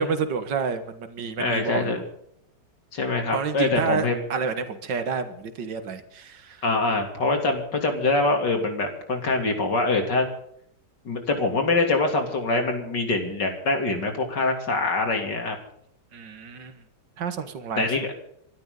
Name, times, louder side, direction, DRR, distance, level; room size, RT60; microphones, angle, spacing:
voice 1, 0.0-2.0 3.3-6.6 16.1-16.8 17.2-18.0, right 5 dB, 85° right, 9 dB, 2.2 m, -29 dB
voice 2, 1.4-2.0 2.9-4.2 6.6-10.3 11.1-15.6 17.8-18.1, left 3 dB, 80° left, 4 dB, 3.8 m, -24 dB
26.5 x 13.0 x 4.0 m, 0.70 s
omnidirectional pair, 1.9 m